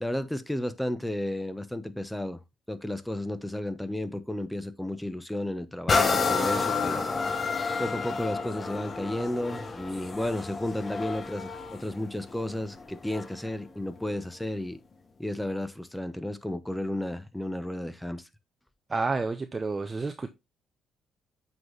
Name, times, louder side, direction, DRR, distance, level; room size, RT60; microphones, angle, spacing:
voice 1, 0.0-2.4 2.7-7.1 7.8-14.8 15.2-18.3, left 1 dB, 5° left, 0.8 m, -33 dB
sound 1, 5.9-13.5 14.1-14.2, left 4 dB, 35° left, 1.0 m, -30 dB
voice 2, 18.9-20.3, right 3 dB, 25° right, 0.6 m, -30 dB
7.6 x 4.0 x 3.2 m
cardioid pair, 90°, 0 cm